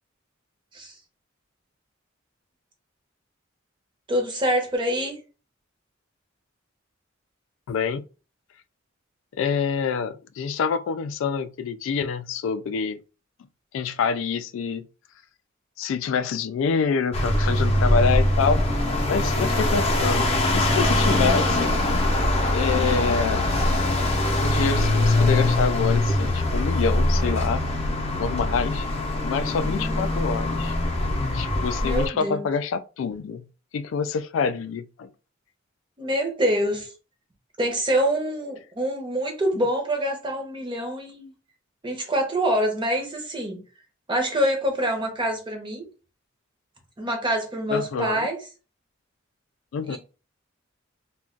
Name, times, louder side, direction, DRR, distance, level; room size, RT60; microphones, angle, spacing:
voice 1, 4.1-5.2 29.6-30.0 31.8-32.5 36.0-36.9 37.6-41.3 41.8-43.6 44.1-45.9 47.0-48.4 49.9-50.0, equal, 25° right, 0.8 m, -26 dB
voice 2, 7.7-8.0 9.3-13.0 13.7-14.9 15.8-18.6 19.1-21.7 22.5-23.5 24.4-27.6 28.2-28.9 29.2-30.7 31.3-33.5 33.7-35.1 47.7-48.3 49.7-50.0, left 6 dB, 70° left, 0.3 m, -26 dB
sound 1, 17.1-32.1, left 1 dB, 30° left, 0.6 m, -22 dB
2.4 x 2.2 x 3.7 m
head